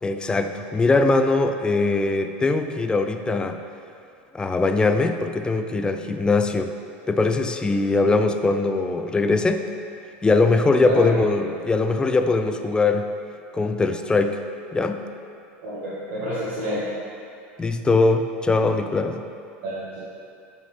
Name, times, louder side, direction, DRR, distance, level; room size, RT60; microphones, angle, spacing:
voice 1, 0.0-3.6 4.3-6.7 7.1-9.7 10.2-13.1 13.5-14.4 14.7-15.0 17.6-19.2, left 3 dB, 15° left, 7 dB, 0.3 m, -21 dB
voice 2, 10.8-11.2 15.6-16.9 19.6-20.0, equal, 65° right, -11 dB, 1.6 m, -29 dB
9.3 x 4.1 x 3.1 m, 2.5 s
supercardioid pair, 110°, 6 cm